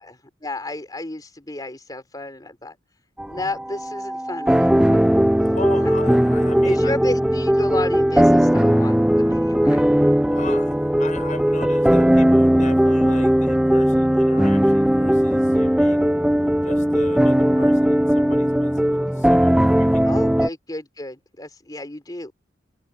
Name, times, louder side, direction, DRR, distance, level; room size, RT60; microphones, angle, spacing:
voice 1, 0.4-2.8 3.3-5.0 5.8-5.9 6.6-9.9 20.0-22.3, left 2 dB, 20° left, 3.5 m, -32 dB
sound 1, 3.2-20.5, equal, 5° right, 0.4 m, -18 dB
voice 2, 5.4-7.0 10.3-16.1 16.6-20.3, left 3 dB, 40° left, 6.7 m, -38 dB
head